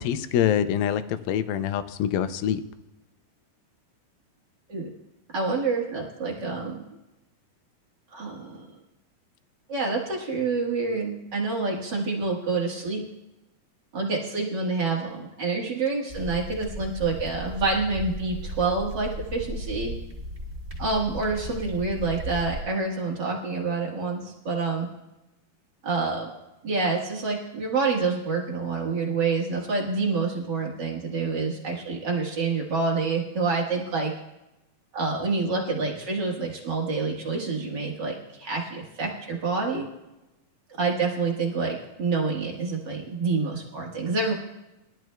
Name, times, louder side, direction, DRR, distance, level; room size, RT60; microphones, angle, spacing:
voice 1, 0.0-2.6, left 9 dB, 80° left, 11 dB, 2.5 m, -25 dB
voice 2, 5.3-6.8 8.1-8.7 9.7-13.0 13.9-19.9 20.8-24.9 25.8-26.3 26.6-34.1 34.9-39.9 40.8-44.3, right 4 dB, 60° right, -2 dB, 1.1 m, -27 dB
sound 1, 16.1-22.6, equal, 20° right, 2.8 m, -36 dB
22.0 x 12.5 x 2.3 m, 0.97 s
omnidirectional pair, 4.3 m